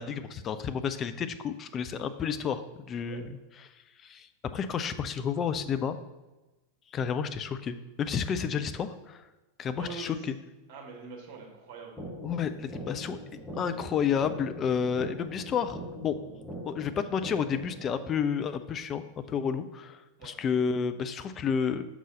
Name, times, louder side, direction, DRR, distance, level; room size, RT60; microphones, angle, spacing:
voice 1, 0.0-3.3 4.0-6.0 6.9-9.2 9.6-10.3 12.2-13.2 13.6-16.2 16.7-19.0 19.3-21.8, left 7 dB, 25° left, 10 dB, 0.4 m, -31 dB
voice 2, 9.8-10.1 10.7-12.0 20.2-20.3, right 5 dB, 45° right, -1 dB, 1.7 m, -43 dB
sound 1, 12.0-18.0, right 1 dB, 5° left, 1.3 m, -42 dB
6.1 x 3.9 x 5.3 m, 1.1 s
figure-of-eight pair, 90°, 0 cm